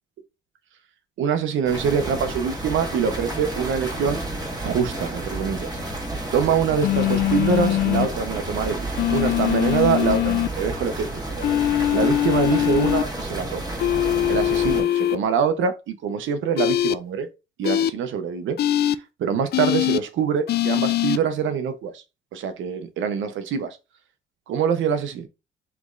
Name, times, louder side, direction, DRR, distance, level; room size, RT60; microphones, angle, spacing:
voice 1, 1.2-4.2 4.6-5.7 6.3-11.4 11.9-13.7 14.3-17.3 17.6-18.6 19.2-22.0 22.3-23.8 24.5-25.3, right 7 dB, 75° right, 0.8 m, -24 dB
sound 1, 1.6-14.8, right 2 dB, 20° right, 1.6 m, -31 dB
sound 2, 6.8-8.1 9.0-10.5 11.4-13.0 13.8-15.2 16.6-16.9 17.6-17.9 18.6-18.9 19.5-20.0 20.5-21.2, left 13 dB, 55° left, 0.4 m, -22 dB
6.0 x 3.1 x 2.5 m
cardioid pair, 90°, 20 cm